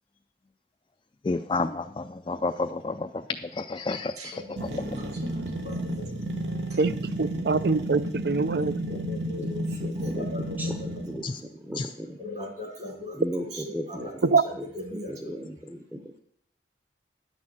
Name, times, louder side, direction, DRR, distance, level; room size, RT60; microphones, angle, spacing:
voice 1, 1.2-4.9 11.2-11.4 11.7-11.9, left 3 dB, 25° left, 7 dB, 0.3 m, -31 dB
voice 2, 4.2-6.2 6.7-6.8 8.5-10.9 12.2-14.1 14.4-15.3, left 2 dB, 40° right, 4 dB, 1.8 m, -40 dB
sound 1, 4.6-11.3, right 1 dB, 85° right, 1.4 m, -32 dB
voice 3, 7.2-8.7 14.2-14.4, right 4 dB, 65° right, 15 dB, 0.5 m, -23 dB
voice 4, 8.9-9.5 9.8-10.3 10.6-10.8 11.1-12.2 13.1-14.4 14.9-16.2, equal, 10° right, 4 dB, 0.7 m, -37 dB
9.8 x 6.3 x 7.3 m, 0.69 s
head